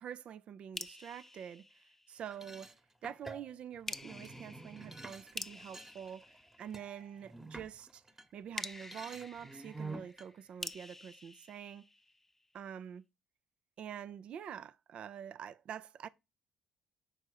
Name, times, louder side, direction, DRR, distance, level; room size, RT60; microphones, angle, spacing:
voice 1, 0.0-2.7 3.0-8.0 8.3-11.8 12.5-13.0 13.8-16.1, right 8 dB, 60° right, 0.5 m, -46 dB
sound 1, 0.7-2.5 3.9-7.2 8.5-12.5, left 2 dB, 15° left, 0.6 m, -48 dB
sound 2, 2.3-8.3 8.6-10.3, right 3 dB, 15° right, 1.1 m, -49 dB
6.3 x 4.3 x 6.5 m
supercardioid pair, 70°, 2 cm